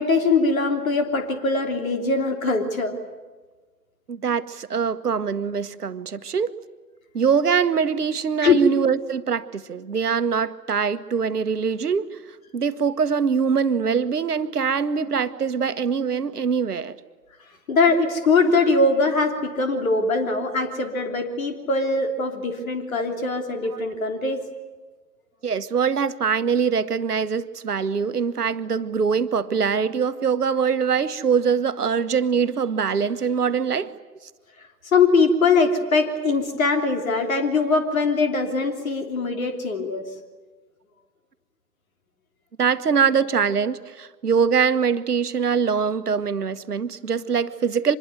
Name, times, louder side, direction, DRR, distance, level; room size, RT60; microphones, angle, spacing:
voice 1, 0.0-2.9 8.4-8.6 17.7-24.4 34.9-40.1, left 3 dB, 55° left, 3.3 m, -22 dB
voice 2, 4.1-6.5 7.1-12.2 12.5-17.0 23.7-23.8 25.4-33.9 42.6-48.0, right 6 dB, 70° right, 1.4 m, -23 dB
25.5 x 21.5 x 9.2 m
figure-of-eight pair, 125°, 49 cm